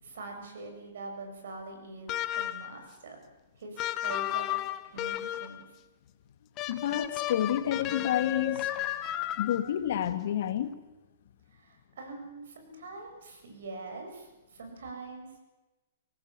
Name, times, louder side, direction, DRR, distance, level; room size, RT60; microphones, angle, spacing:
voice 1, 0.0-3.2 3.6-4.6 4.8-5.8 11.5-15.4, right 3 dB, 75° right, 3 dB, 7.3 m, -44 dB
sound 1, 2.1-2.8 3.8-5.6 6.6-9.8, left 13 dB, 30° left, 1.2 m, -33 dB
voice 2, 6.7-8.7 9.4-10.8, left 10 dB, 65° left, 10 dB, 1.9 m, -29 dB
23.0 x 18.5 x 7.6 m, 1.1 s
hypercardioid pair, 145°, 0 cm